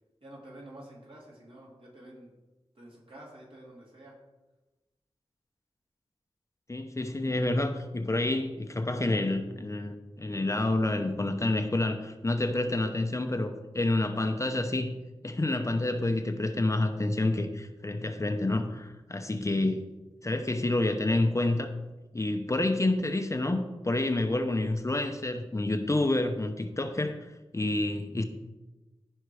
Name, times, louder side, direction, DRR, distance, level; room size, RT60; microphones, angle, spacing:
voice 1, 0.2-2.3 2.7-4.2, right 1 dB, 60° right, -4 dB, 3.8 m, -49 dB
voice 2, 6.7-15.0 15.2-19.8 20.2-21.7 22.1-27.2 27.5-28.2, left 2 dB, 30° left, 6 dB, 0.8 m, -28 dB
15.0 x 5.5 x 4.9 m, 1.1 s
wide cardioid pair, 85°, 10 cm